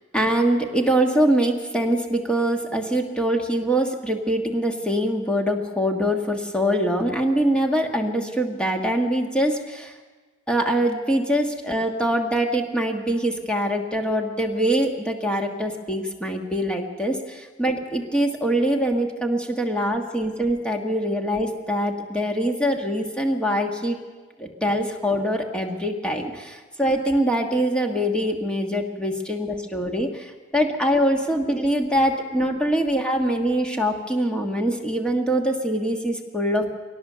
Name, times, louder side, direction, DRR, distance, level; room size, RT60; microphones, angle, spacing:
voice 1, 0.1-9.9 10.5-24.0 24.4-36.7, equal, 5° left, 2 dB, 1.5 m, -23 dB
23.0 x 18.0 x 6.8 m, 1.4 s
head